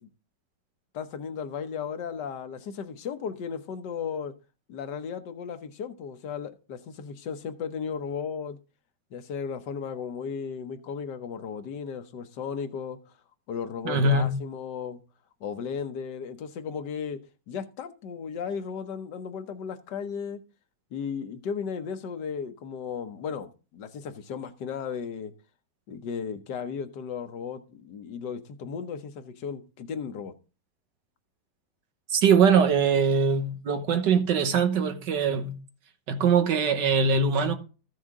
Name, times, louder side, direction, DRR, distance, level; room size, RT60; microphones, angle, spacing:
voice 1, 0.9-4.3 4.7-8.6 9.1-13.0 13.5-15.0 15.4-17.2 17.5-20.4 20.9-25.3 25.9-30.3, left 6 dB, 80° left, 1.6 m, -35 dB
voice 2, 13.9-14.4 32.1-35.6 36.1-37.5, right 5 dB, 85° right, 1.8 m, -22 dB
14.5 x 6.4 x 3.6 m
omnidirectional pair, 1.8 m